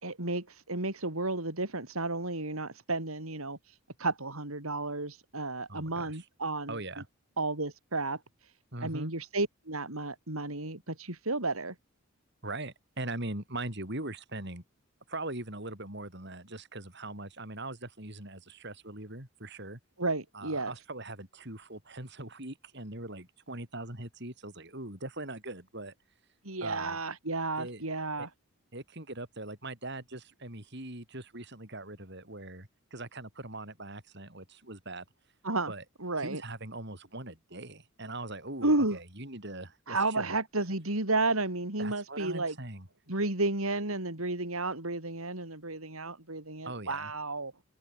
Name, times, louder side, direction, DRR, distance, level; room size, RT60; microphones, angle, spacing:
voice 1, 0.0-3.6 4.0-6.8 7.4-8.2 8.8-11.7 20.0-20.7 26.4-28.3 35.4-35.7 36.0-36.4 38.6-39.0 39.9-42.5 43.1-47.5, right 2 dB, 80° right, 4.7 m, -32 dB
voice 2, 5.7-6.2 6.7-7.1 8.7-9.1 12.4-14.6 15.1-19.8 20.3-25.9 26.6-27.0 27.6-27.8 28.2-28.3 28.7-35.0 35.7-35.8 36.2-40.3 41.8-42.9 46.7-47.1, right 2 dB, 55° right, 6.1 m, -41 dB
open air
head